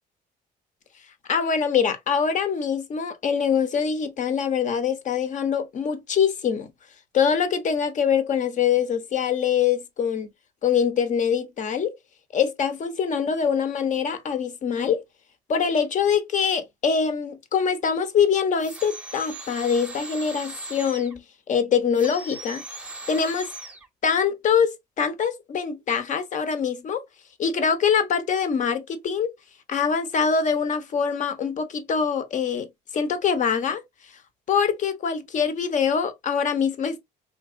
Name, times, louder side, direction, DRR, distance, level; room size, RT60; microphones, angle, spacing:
voice 1, 1.3-6.7 7.1-10.3 10.6-11.9 12.3-15.0 15.5-22.6 23.1-23.5 24.0-27.0 27.4-29.3 29.7-32.7 32.9-33.8 34.5-37.0, left 7 dB, 45° left, 0.9 m, -24 dB
sound 1, 18.6-21.2 21.9-23.9, right 2 dB, 5° right, 0.7 m, -39 dB
4.0 x 2.9 x 2.5 m
cardioid pair, 110°, 17 cm